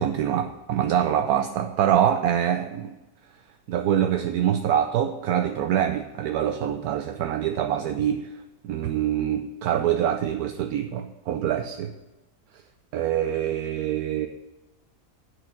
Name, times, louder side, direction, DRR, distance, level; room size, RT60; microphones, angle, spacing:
voice 1, 0.0-2.9 3.7-8.3 8.6-11.9 12.9-14.3, right 10 dB, 75° right, 7 dB, 1.1 m, -25 dB
8.4 x 6.5 x 7.6 m, 1.1 s
omnidirectional pair, 1.6 m